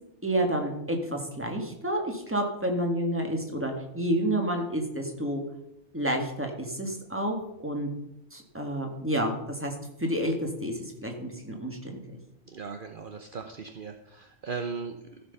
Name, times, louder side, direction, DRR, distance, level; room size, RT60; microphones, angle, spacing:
voice 1, 0.2-5.4 5.9-7.9 8.3-11.9, right 1 dB, 10° right, 2 dB, 2.0 m, -30 dB
voice 2, 12.5-15.2, right 5 dB, 50° right, 6 dB, 1.0 m, -38 dB
15.0 x 7.1 x 5.5 m, 0.85 s
omnidirectional pair, 1.2 m